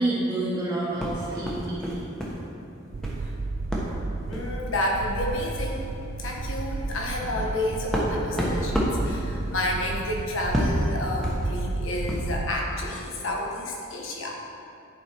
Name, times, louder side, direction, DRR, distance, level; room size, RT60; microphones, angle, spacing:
voice 1, 0.0-2.0, right 2 dB, 20° right, -11 dB, 1.2 m, -28 dB
sound 1, 1.0-2.4 2.7-3.2 3.7-3.9 4.3-4.5 5.4-5.5 5.9-6.0 6.5-12.4, equal, 5° left, 1.1 m, -30 dB
sound 2, 2.9-12.6, right 3 dB, 45° right, 0.3 m, -33 dB
voice 2, 4.3-14.3, left 1 dB, 75° left, -1 dB, 1.2 m, -30 dB
11.0 x 5.1 x 4.5 m, 2.6 s
head